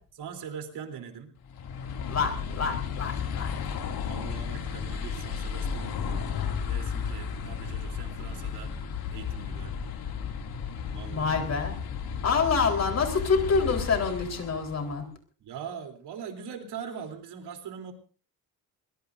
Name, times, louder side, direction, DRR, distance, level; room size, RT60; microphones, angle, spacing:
voice 1, 0.2-1.3 4.1-6.3 6.6-8.7 9.1-9.8 10.9-11.5 15.4-17.9, right 7 dB, 85° right, 4 dB, 3.5 m, -41 dB
sound 1, 1.4-15.0, left 6 dB, 65° left, 2.6 m, -34 dB
voice 2, 2.1-3.6 11.1-11.8 12.2-15.0, left 5 dB, 40° left, 3 dB, 4.1 m, -27 dB
23.5 x 20.5 x 2.6 m, 0.41 s
cardioid pair, 160°, 39 cm